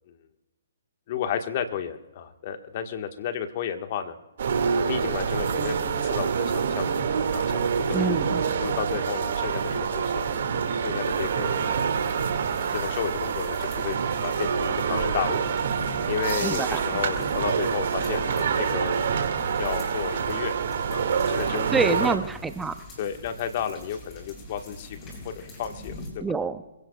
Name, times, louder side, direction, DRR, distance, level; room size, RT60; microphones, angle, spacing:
voice 1, 1.1-4.2 4.8-8.1 8.6-10.3 10.8-11.9 12.2-15.5 16.1-18.9 19.6-20.6 20.9-22.1 23.0-26.2, left 8 dB, 45° left, 6 dB, 1.4 m, -33 dB
sound 1, 4.4-22.2, right 6 dB, 60° right, 2.0 m, -26 dB
voice 2, 7.9-8.4 16.4-16.8 21.7-22.7 26.2-26.6, right 4 dB, 10° right, 10 dB, 0.6 m, -26 dB
sound 2, 11.8-26.1, left 1 dB, 25° left, 6.9 m, -44 dB
26.5 x 16.5 x 2.3 m, 1.1 s
hypercardioid pair, 135°, 0 cm